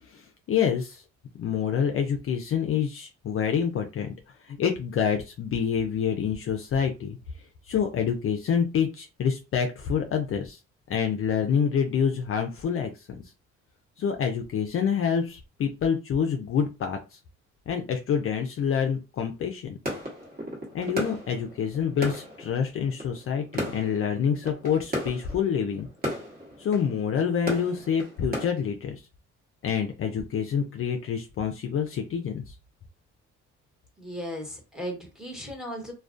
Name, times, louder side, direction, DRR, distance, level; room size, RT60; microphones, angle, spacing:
voice 1, 0.1-1.0 1.4-4.1 4.4-7.2 7.6-10.6 10.9-13.3 14.0-17.2 17.7-19.8 20.7-25.9 26.6-29.0 29.6-32.5, left 7 dB, 45° left, 4 dB, 0.4 m, -27 dB
sound 1, 19.8-28.5, equal, 30° right, 1.2 m, -36 dB
voice 2, 34.0-35.9, equal, ahead, 0 dB, 1.1 m, -36 dB
2.2 x 2.2 x 2.5 m, 0.29 s
cardioid pair, 90°, 30 cm